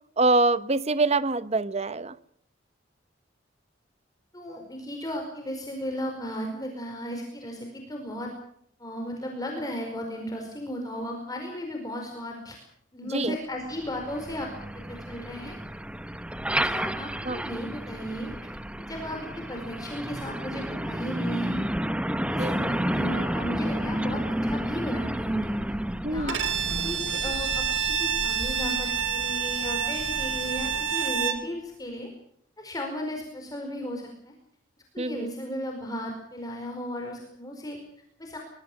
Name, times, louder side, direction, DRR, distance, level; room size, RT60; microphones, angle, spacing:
voice 1, 0.2-2.1 13.1-13.4 17.2-17.4 22.4-22.7 26.0-26.3 35.0-35.3, right 2 dB, 35° right, 1.0 m, -25 dB
voice 2, 4.3-8.3 8.8-12.6 12.9-14.5 14.9-15.6 16.5-18.5 18.8-21.6 22.3-25.5 26.1-26.4 26.7-32.1 32.6-34.3 34.9-37.8 38.2-38.4, equal, 20° left, 4.8 m, -35 dB
Truck, 13.6-31.3, right 1 dB, 5° right, 0.9 m, -32 dB
Bowed string instrument, 26.3-31.5, right 7 dB, 65° right, 2.4 m, -28 dB
23.5 x 23.0 x 6.2 m
head